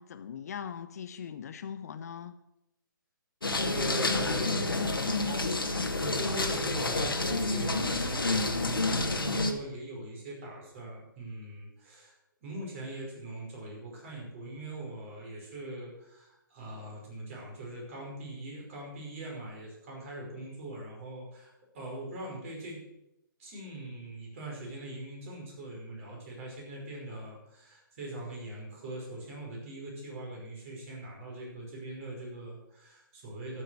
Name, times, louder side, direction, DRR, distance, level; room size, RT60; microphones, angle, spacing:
voice 1, 0.0-2.3, left 8 dB, 45° left, 11 dB, 0.7 m, -40 dB
sound 1, 3.4-9.5, left 2 dB, 80° left, 1.5 m, -29 dB
voice 2, 3.6-4.9 6.0-12.2 12.4-22.8 23.4-33.6, right 1 dB, 40° right, -2 dB, 5.3 m, -41 dB
11.5 x 7.5 x 6.4 m, 0.88 s
figure-of-eight pair, 135°, 11 cm